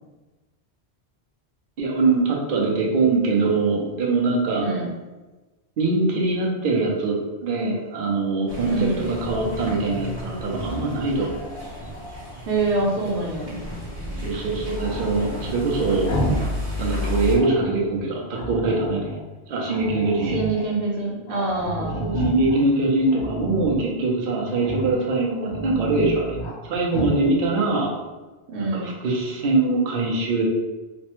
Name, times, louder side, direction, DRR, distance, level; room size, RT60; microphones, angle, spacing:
voice 1, 1.8-4.7 5.8-11.3 14.2-16.1 16.8-19.1 19.5-20.4 21.8-26.4 26.6-27.9 28.6-30.5, right 3 dB, 60° right, -2 dB, 0.7 m, -23 dB
voice 2, 4.6-4.9 8.6-9.1 12.5-13.6 20.3-22.0 28.5-28.9, right 3 dB, 90° right, -1 dB, 0.9 m, -25 dB
sound 1, 8.5-17.3, left 1 dB, 25° right, 0.9 m, -32 dB
Growling, 10.4-12.4 14.8-16.5 16.8-17.7 18.3-19.2 19.7-20.7 21.0-21.1 21.3-22.6 23.1-23.9 24.6-25.0 25.4-26.6 26.9-27.2, right 1 dB, 90° left, 1.0 m, -31 dB
3.1 x 2.1 x 2.9 m, 1.2 s
omnidirectional pair, 1.1 m